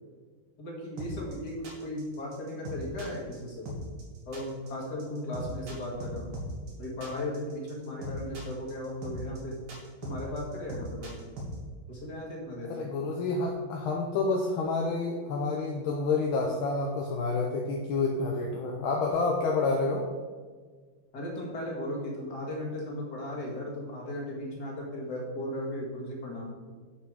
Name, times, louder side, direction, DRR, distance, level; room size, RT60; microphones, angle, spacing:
voice 1, 0.6-3.7 4.3-6.3 6.8-9.6 10.0-11.3 11.9-12.9 21.1-26.5, left 1 dB, 50° left, -3 dB, 2.4 m, -36 dB
sound 1, 1.0-11.5, right 1 dB, 70° right, 2.5 m, -39 dB
voice 2, 12.7-20.1, left 3 dB, 75° left, 0 dB, 1.6 m, -29 dB
8.4 x 5.9 x 4.8 m, 1.5 s
omnidirectional pair, 2.4 m